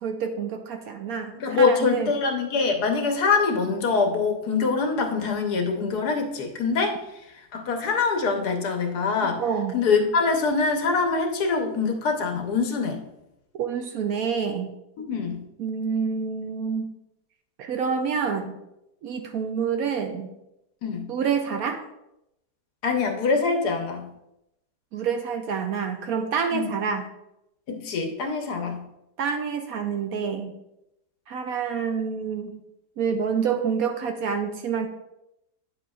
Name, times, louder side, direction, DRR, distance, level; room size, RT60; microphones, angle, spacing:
voice 1, 0.0-2.1 9.4-9.8 13.5-14.7 15.6-16.9 17.6-18.6 19.0-20.3 21.1-21.8 24.9-27.1 29.2-30.5 31.3-32.6 33.0-34.9, right 6 dB, 70° right, 6 dB, 1.0 m, -27 dB
voice 2, 1.3-9.4 9.7-13.0 15.0-15.4 20.8-21.1 22.8-24.1 26.5-26.7 27.7-28.8, left 4 dB, 70° left, 4 dB, 1.4 m, -24 dB
9.2 x 7.4 x 2.4 m, 0.86 s
omnidirectional pair, 1.8 m